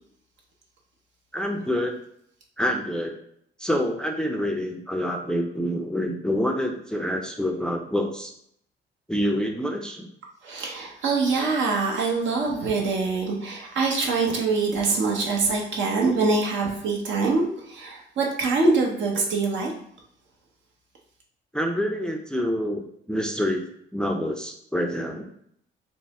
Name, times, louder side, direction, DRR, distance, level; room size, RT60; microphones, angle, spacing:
voice 1, 1.3-2.0 2.6-3.1 3.6-8.3 9.1-10.1 21.5-23.6 23.9-25.3, equal, 5° left, 3 dB, 0.4 m, -27 dB
voice 2, 10.4-19.7, right 3 dB, 75° right, -1 dB, 1.0 m, -24 dB
3.9 x 2.0 x 3.6 m, 0.69 s
cardioid pair, 90°, 20 cm